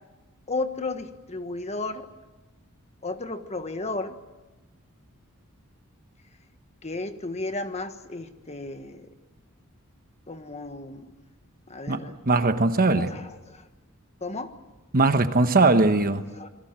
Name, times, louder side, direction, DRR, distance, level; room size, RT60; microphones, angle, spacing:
voice 1, 0.5-2.1 3.0-4.2 6.8-9.1 10.3-11.1 11.7-12.1 12.9-13.7 14.2-14.5 16.4-16.5, left 3 dB, 30° left, 8 dB, 1.5 m, -33 dB
voice 2, 11.9-13.1 14.9-16.3, right 3 dB, 40° right, 9 dB, 1.2 m, -20 dB
27.0 x 21.5 x 7.5 m, 1.1 s
head